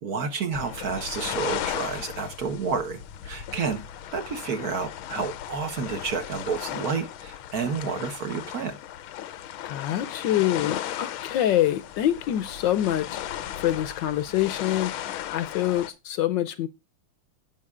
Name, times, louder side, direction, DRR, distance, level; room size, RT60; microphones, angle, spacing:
voice 1, 0.0-3.8 4.1-8.8, right 5 dB, 55° right, 1.4 m, -30 dB
sound 1, 0.5-15.9, left 11 dB, 85° left, 1.6 m, -36 dB
voice 2, 9.3-16.7, left 12 dB, 70° left, 1.3 m, -26 dB
16.0 x 6.1 x 2.4 m
omnidirectional pair, 2.3 m